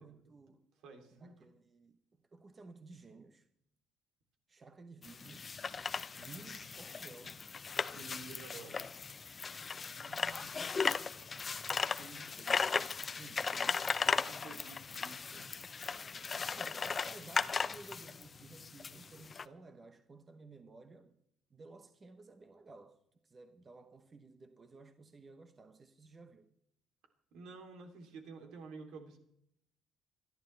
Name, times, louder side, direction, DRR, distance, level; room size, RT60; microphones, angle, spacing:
voice 1, 0.0-0.7 1.2-3.5 4.5-5.5 6.2-7.4 9.9-10.6 11.8-13.9 15.5-16.0 16.3-21.1 21.5-23.0 23.2-26.5, right 3 dB, 25° right, 0.9 m, -55 dB
voice 2, 0.8-1.4 7.9-8.9 14.2-15.5 27.3-29.2, right 4 dB, 80° right, 3.1 m, -51 dB
sound 1, 5.0-19.5, left 5 dB, 25° left, 0.5 m, -37 dB
26.5 x 11.5 x 3.3 m
cardioid pair, 150°, 0 cm